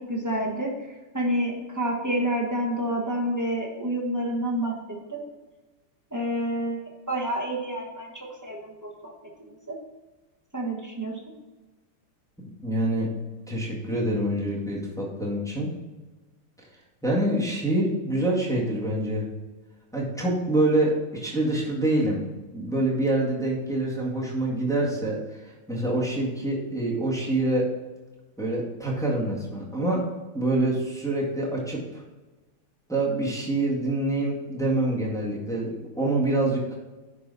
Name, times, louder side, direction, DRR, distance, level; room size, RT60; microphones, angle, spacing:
voice 1, 0.0-5.2 6.1-9.1 9.7-9.8 10.5-11.2, right 1 dB, 15° right, -3 dB, 0.7 m, -29 dB
voice 2, 12.6-13.1 13.5-15.7 17.0-19.3 19.9-22.2 22.5-27.6 28.4-30.1 30.3-32.0 32.9-36.7, right 1 dB, ahead, -5 dB, 1.7 m, -26 dB
10.0 x 5.0 x 4.1 m, 1.2 s
omnidirectional pair, 2.4 m